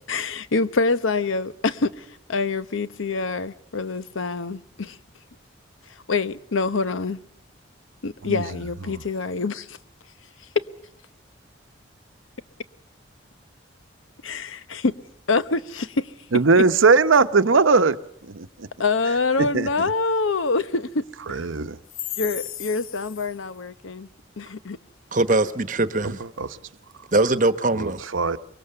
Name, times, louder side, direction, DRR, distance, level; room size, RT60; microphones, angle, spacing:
voice 1, 0.1-5.0 6.1-7.2 8.0-9.8 10.5-10.6 14.2-15.0 15.3-16.1 16.6-16.7 18.8-21.5 22.2-24.1 24.4-24.8, left 3 dB, 90° left, 0.9 m, -25 dB
voice 2, 16.3-18.0 18.2-18.7 19.5-19.7 21.3-21.8 26.0-26.6 27.8-28.4, right 4 dB, 90° right, 0.9 m, -20 dB
voice 3, 25.1-26.2 27.1-28.0, right 2 dB, 40° right, 1.0 m, -21 dB
24.0 x 22.5 x 6.8 m
head